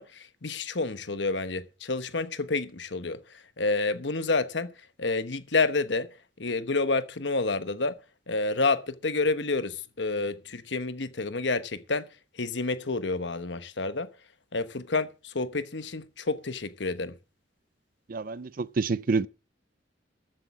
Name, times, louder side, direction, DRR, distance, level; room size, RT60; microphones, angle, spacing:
voice 1, 0.0-6.1 6.4-8.0 8.3-12.1 12.3-14.1 14.5-17.1, left 3 dB, 70° left, 1.2 m, -29 dB
voice 2, 18.1-19.3, right 4 dB, 50° right, 0.5 m, -28 dB
14.0 x 7.7 x 6.0 m
head